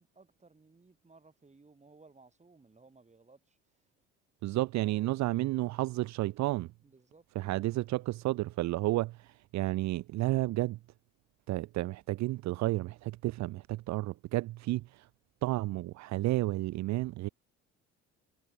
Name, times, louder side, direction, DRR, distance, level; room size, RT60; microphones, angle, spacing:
voice 1, 0.0-3.9 4.7-5.2 6.8-7.2, right 3 dB, 20° right, 5.5 m, -60 dB
voice 2, 4.4-6.7 7.3-10.8 11.5-15.1 15.4-17.3, right 17 dB, 60° right, 0.7 m, -31 dB
hypercardioid pair, 65°, 31 cm